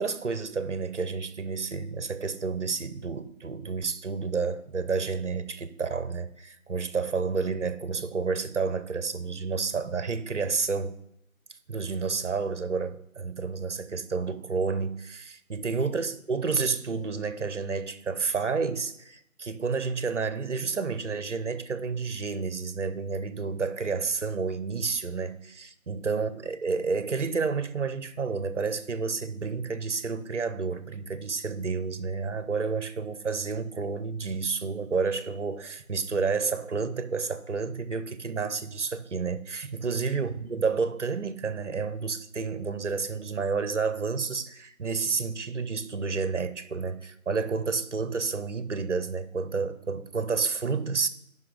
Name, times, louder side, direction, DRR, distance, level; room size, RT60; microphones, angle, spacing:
voice 1, 0.0-11.0 11.7-51.1, right 4 dB, 55° right, 0.8 m, -30 dB
11.0 x 5.5 x 3.9 m
figure-of-eight pair, 175°, 43 cm